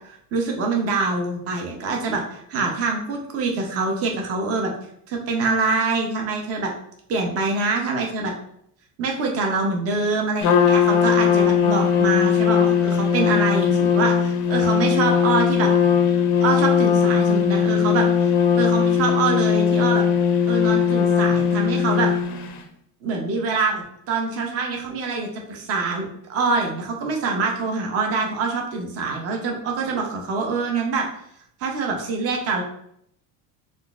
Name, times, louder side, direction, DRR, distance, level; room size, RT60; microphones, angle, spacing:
voice 1, 0.3-4.7 5.1-6.7 7.1-8.3 9.0-15.7 16.4-18.0 18.5-20.0 20.5-22.1 23.0-31.1 31.6-32.6, right 3 dB, 35° right, 1 dB, 0.6 m, -25 dB
Trumpet, 10.4-22.5, left 7 dB, 40° left, 0.4 m, -19 dB
3.7 x 2.4 x 2.3 m, 0.70 s
cardioid pair, 135°, 45 cm